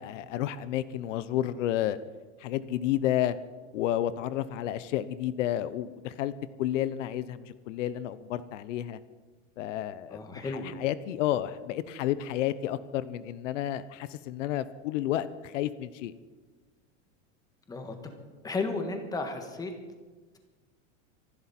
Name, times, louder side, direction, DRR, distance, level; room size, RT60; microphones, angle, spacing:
voice 1, 0.0-2.0 2.4-3.4 3.7-6.3 6.6-9.0 9.6-16.1, left 12 dB, 75° left, 15 dB, 0.9 m, -31 dB
voice 2, 10.1-10.7 17.7-18.0 18.4-19.8, left 3 dB, 10° left, 5 dB, 1.5 m, -33 dB
25.5 x 11.5 x 4.3 m, 1.3 s
supercardioid pair, 165°, 37 cm